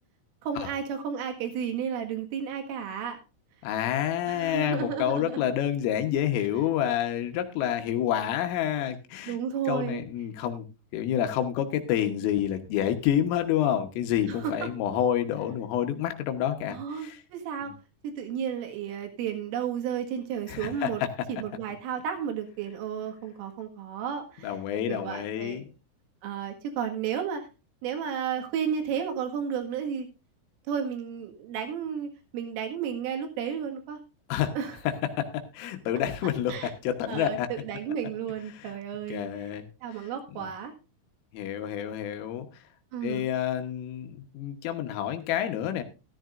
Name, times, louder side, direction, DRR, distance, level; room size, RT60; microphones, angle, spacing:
voice 1, 0.4-3.2 4.3-5.5 9.3-10.0 14.3-14.7 16.7-17.7 18.0-21.0 21.3-24.6 24.9-25.6 26.2-27.5 27.8-30.1 30.7-34.0 34.6-34.8 36.5-36.7 37.1-39.5 39.8-40.7 42.9-43.3, right 8 dB, 75° right, 4 dB, 4.3 m, -33 dB
voice 2, 3.6-9.4 9.7-10.7 10.9-17.2 17.6-17.7 20.5-21.1 24.4-25.7 34.3-34.5 34.9-37.5 38.5-38.7 39.1-39.7 40.3-40.5 41.3-42.6 43.0-45.8, left 10 dB, 80° left, 7 dB, 3.7 m, -28 dB
14.5 x 13.5 x 2.5 m, 0.29 s
omnidirectional pair, 5.9 m